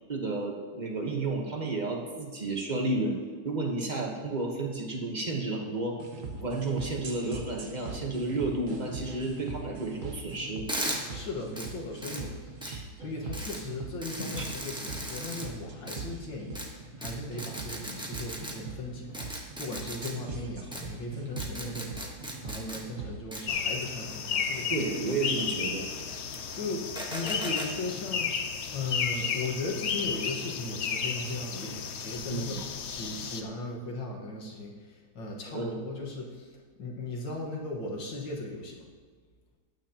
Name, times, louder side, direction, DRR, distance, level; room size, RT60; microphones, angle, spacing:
voice 1, 0.1-3.2 3.4-6.0 6.4-10.7 12.6-12.8 14.2-14.4 24.7-25.9 32.3-32.6 35.5-35.8, right 2 dB, 30° right, 0 dB, 1.1 m, -32 dB
sound 1, 6.0-23.2, right 4 dB, 50° right, 1.4 m, -41 dB
sound 2, 10.7-11.0 11.6-11.7 12.0-12.2 12.6-12.7 13.3-13.6 14.0-15.5 15.9-16.0 16.5-16.7 17.0-17.1 17.4-18.5 19.1-20.1 20.7-20.8 21.4-22.8 23.3-23.4 24.1-25.4 25.9-26.6 26.9-27.7, equal, 5° right, 0.9 m, -37 dB
voice 2, 11.1-12.5 13.0-24.8 26.5-28.3 28.7-32.6 32.8-38.8, left 2 dB, 90° left, -1 dB, 2.3 m, -37 dB
sound 3, 23.5-33.4, left 6 dB, 70° left, 0.6 m, -33 dB
14.5 x 9.9 x 2.9 m, 1.6 s
omnidirectional pair, 2.0 m